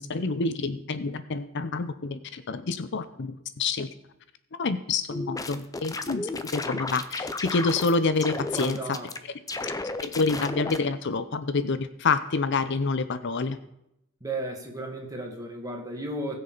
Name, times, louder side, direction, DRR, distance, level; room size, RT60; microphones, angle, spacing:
voice 1, 0.0-3.9 4.6-9.0 10.0-13.6, left 4 dB, 60° left, 12 dB, 0.6 m, -28 dB
sound 1, 5.1-7.9 8.2-9.2 9.5-10.8, left 3 dB, 15° left, 0.6 m, -33 dB
voice 2, 8.5-9.1 14.2-16.4, right 2 dB, 15° right, 1 dB, 2.0 m, -34 dB
20.0 x 6.6 x 4.0 m, 0.82 s
head